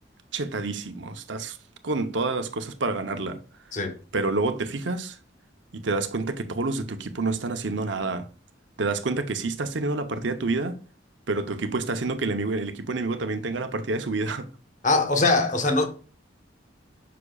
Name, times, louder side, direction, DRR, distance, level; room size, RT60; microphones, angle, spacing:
voice 1, 0.3-1.6 1.8-3.4 4.1-5.2 5.7-8.3 8.8-10.8 11.3-14.5, right 3 dB, 70° right, 0.8 m, -28 dB
voice 2, 14.8-15.9, left 3 dB, 40° left, 1.0 m, -22 dB
9.8 x 6.0 x 2.4 m
head